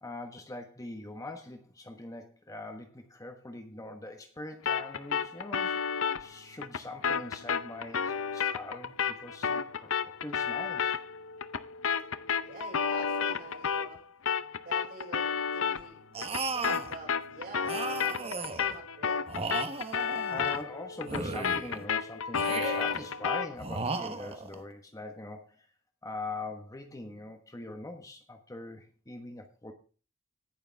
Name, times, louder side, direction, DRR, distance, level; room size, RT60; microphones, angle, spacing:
voice 1, 0.0-5.8 6.2-9.9 10.2-11.0 19.7-19.9 20.3-25.7 26.0-29.7, left 2 dB, 15° left, 5 dB, 1.2 m, -42 dB
sound 1, 4.7-14.0 14.3-23.6, left 6 dB, 70° left, 0.7 m, -32 dB
voice 2, 12.4-14.0 14.6-19.2, right 3 dB, 50° right, 0 dB, 5.6 m, -47 dB
sound 2, 16.1-16.9 17.6-18.8 19.3-20.6 21.1-21.8 22.3-23.0 23.6-24.6, right 3 dB, 30° right, 1.1 m, -36 dB
18.5 x 6.8 x 3.5 m, 0.36 s
head